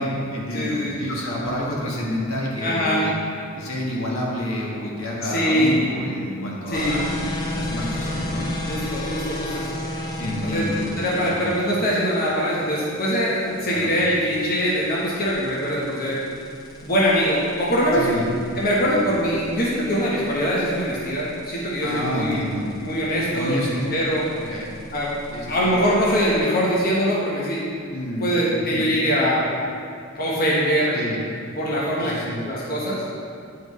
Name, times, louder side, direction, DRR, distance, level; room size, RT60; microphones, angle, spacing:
voice 1, 0.0-3.2 3.5-8.5 10.2-11.4 13.6-13.9 17.9-18.3 21.8-22.7 23.3-23.8 24.5-24.7 25.3-25.7 27.9-28.3 28.7-28.9 30.9-31.2 32.0-32.4, left 1 dB, 75° left, -4 dB, 1.5 m, -29 dB
voice 2, 0.5-1.0 2.6-3.0 5.2-5.8 6.7-7.1 8.7-9.8 10.4-10.6 11.0-16.2 16.8-18.1 18.6-22.5 22.8-24.3 24.9-25.1 25.5-27.6 28.2-29.4 30.1-30.9 31.5-32.1 32.4-33.0, equal, 45° left, -6 dB, 1.1 m, -22 dB
sound 1, 6.7-26.4, left 1 dB, 20° left, 0.9 m, -35 dB
9.9 x 5.5 x 3.1 m, 2.4 s
head